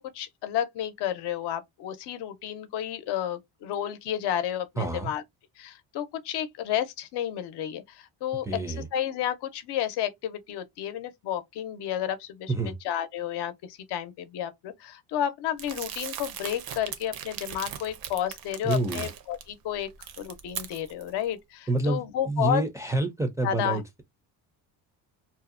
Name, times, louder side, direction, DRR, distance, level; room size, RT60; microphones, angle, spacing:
voice 1, 0.0-5.2 5.6-8.5 8.8-12.5 12.8-19.9 20.2-22.6 23.4-23.8, left 10 dB, 75° left, 0.7 m, -31 dB
voice 2, 4.8-5.1 8.4-8.9 12.5-12.7 18.6-19.1 21.7-24.0, right 2 dB, 10° right, 0.4 m, -28 dB
Crumpling crinkling, 15.6-19.4 19.8-21.1, right 9 dB, 60° right, 0.6 m, -39 dB
2.7 x 2.0 x 2.4 m
cardioid pair, 120°, 41 cm